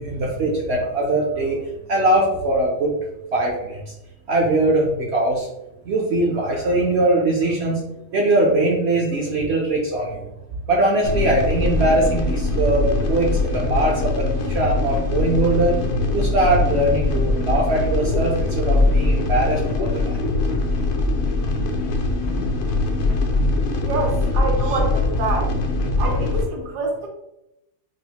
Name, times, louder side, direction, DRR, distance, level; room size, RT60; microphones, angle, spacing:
voice 1, 0.0-1.6 1.9-3.0 3.3-3.8 4.3-5.5 5.8-7.8 8.1-10.3 10.7-15.7 16.1-20.2 22.5-22.6 24.7-24.8, right 2 dB, 65° right, -1 dB, 0.6 m, -21 dB
sound 1, 11.0-26.4, left 2 dB, 70° left, 0.6 m, -22 dB
voice 2, 23.8-25.6 26.0-27.1, right 2 dB, 80° right, 0 dB, 1.4 m, -26 dB
4.8 x 2.0 x 2.8 m, 0.87 s
omnidirectional pair, 1.7 m